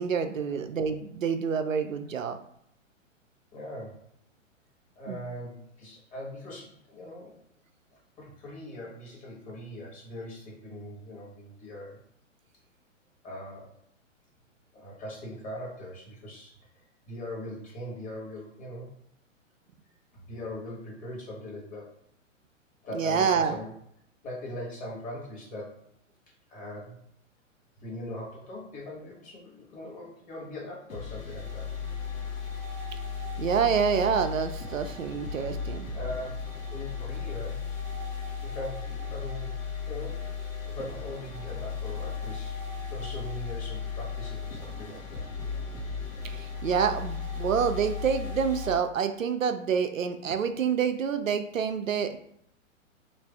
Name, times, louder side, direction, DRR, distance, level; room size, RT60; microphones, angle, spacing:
voice 1, 0.0-2.4 5.1-5.2 22.9-23.6 33.4-35.9 46.2-52.2, right 7 dB, 80° right, 7 dB, 0.5 m, -27 dB
voice 2, 3.5-4.1 5.0-7.4 8.2-12.0 13.2-13.7 14.7-18.9 20.1-21.9 22.8-23.7 24.2-25.8 26.5-27.0 27.8-31.7 35.9-36.3 36.7-37.7 38.4-39.6 39.9-40.3 40.6-42.6 42.9-45.2, left 1 dB, 20° left, -3 dB, 1.1 m, -41 dB
sound 1, 30.9-48.8, left 5 dB, 80° left, 1.0 m, -36 dB
3.2 x 2.5 x 3.4 m, 0.71 s
figure-of-eight pair, 115°, 40 cm